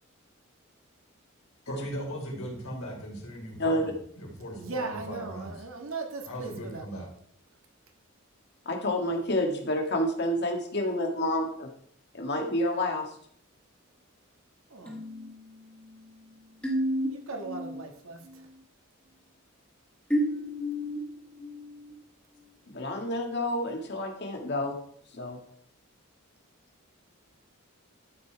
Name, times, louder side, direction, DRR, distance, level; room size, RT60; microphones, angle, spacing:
voice 1, 1.7-5.5 6.3-7.1, equal, 90° left, 0 dB, 3.4 m, -38 dB
voice 2, 4.6-7.0 14.7-15.0 17.1-18.2, right 3 dB, 80° right, 3 dB, 1.7 m, -38 dB
voice 3, 8.7-11.7 12.1-13.2 22.7-24.8 25.1-25.4, left 1 dB, 55° left, 3 dB, 1.7 m, -29 dB
sound 1, 14.9-17.8 18.2-18.6 20.1-22.0, equal, 5° left, 1.8 m, -33 dB
12.5 x 5.4 x 4.7 m, 0.63 s
head